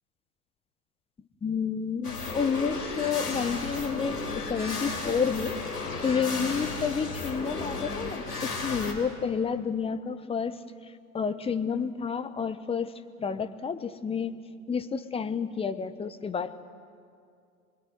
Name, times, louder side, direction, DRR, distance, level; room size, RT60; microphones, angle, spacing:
voice 1, 1.4-5.6 6.0-10.6 11.1-12.9 13.2-14.3 14.7-16.6, left 6 dB, 10° left, 11 dB, 1.0 m, -30 dB
sound 1, 2.0-8.9, left 3 dB, 80° left, 4.9 m, -34 dB
25.5 x 22.0 x 9.5 m, 2.3 s
figure-of-eight pair, 90°, 46 cm